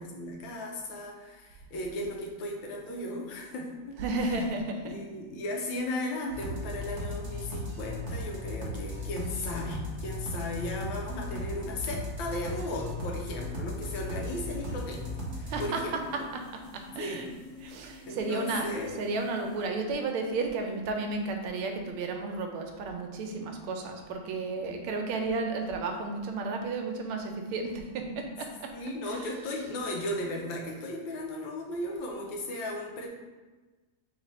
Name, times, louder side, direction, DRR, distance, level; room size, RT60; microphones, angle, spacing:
voice 1, 0.0-4.4 4.8-16.0 17.0-17.2 18.0-19.0 24.6-24.8 28.7-33.1, left 1 dB, 75° left, 0 dB, 1.5 m, -36 dB
voice 2, 4.0-5.0 15.4-15.8 16.3-16.4 16.7-17.3 17.6-18.7 19.0-28.7 29.0-29.3, right 3 dB, 85° right, 3 dB, 1.5 m, -33 dB
sound 1, 6.3-15.6, left 1 dB, 45° right, 1.0 m, -36 dB
sound 2, 13.7-19.7, left 3 dB, 45° left, 1.2 m, -48 dB
3.6 x 3.3 x 4.0 m, 1.2 s
omnidirectional pair, 2.3 m